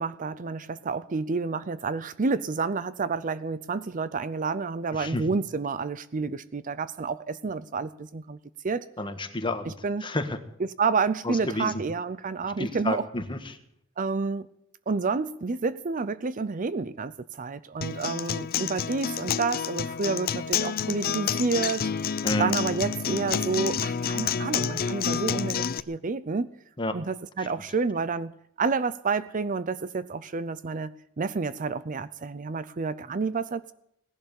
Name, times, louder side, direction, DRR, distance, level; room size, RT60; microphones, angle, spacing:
voice 1, 0.0-8.4 8.6-8.9 9.7-10.1 10.6-13.0 14.0-14.5 14.9-21.9 22.4-26.5 26.9-28.3 28.6-33.7, right 4 dB, 40° right, 16 dB, 0.5 m, -29 dB
voice 2, 4.9-5.2 9.0-9.7 10.0-10.4 11.2-11.7 12.6-13.6 22.2-22.6 26.8-27.0 27.4-27.5, left 1 dB, 25° left, 7 dB, 1.6 m, -30 dB
Acoustic guitar, 17.8-25.8, left 7 dB, 45° left, 0.6 m, -29 dB
18.0 x 11.5 x 7.1 m, 0.73 s
head